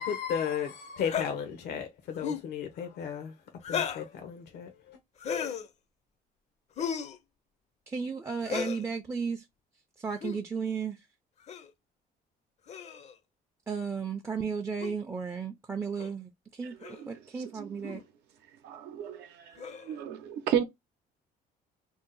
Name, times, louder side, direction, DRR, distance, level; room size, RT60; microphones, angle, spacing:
voice 1, 0.0-3.3 3.7-5.0, left 8 dB, 75° left, 0.7 m, -34 dB
sound 1, 1.0-1.3 2.1-2.5 3.6-4.1 5.2-5.7 6.8-7.2 8.4-8.8 10.1-10.4 11.5-11.7 12.7-13.1 14.8-14.9 16.0-16.1 16.8-17.0 17.8-18.0 19.6-20.0, left 7 dB, 40° left, 0.5 m, -34 dB
voice 2, 7.9-9.4 10.0-11.0 13.7-16.8 17.1-18.0, right 5 dB, 15° right, 0.4 m, -34 dB
voice 3, 17.6-18.0 18.6-19.5 19.8-20.6, right 9 dB, 85° right, 0.7 m, -32 dB
2.7 x 2.0 x 3.8 m
cardioid pair, 110°, 17 cm